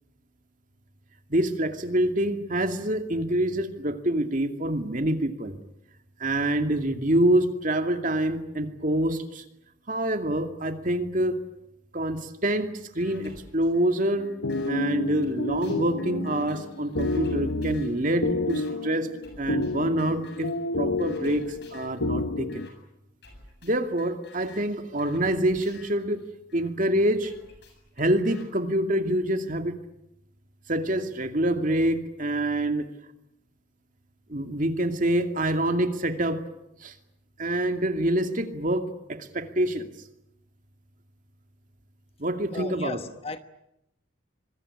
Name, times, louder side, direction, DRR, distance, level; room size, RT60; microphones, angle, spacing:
voice 1, 1.3-5.5 6.2-9.4 9.9-11.4 11.9-14.3 14.7-19.1 19.4-22.6 23.6-26.2 26.5-27.3 28.0-29.7 30.7-32.9 34.3-36.4 36.8-36.9 37.4-39.9 42.2-43.0, right 1 dB, 40° right, 2.4 m, -26 dB
sound 1, 12.5-12.6 13.0-14.7 15.2-18.0 18.5-18.7 19.2-19.7 20.0-20.6 21.0-22.0 22.5-22.7 23.2-26.7 27.2-28.5, left 3 dB, 55° left, 8.0 m, -52 dB
sound 2, 14.2-22.7, left 2 dB, 80° left, 1.2 m, -30 dB
voice 2, 42.5-43.4, left 2 dB, 30° left, 1.2 m, -35 dB
25.5 x 21.5 x 9.9 m
head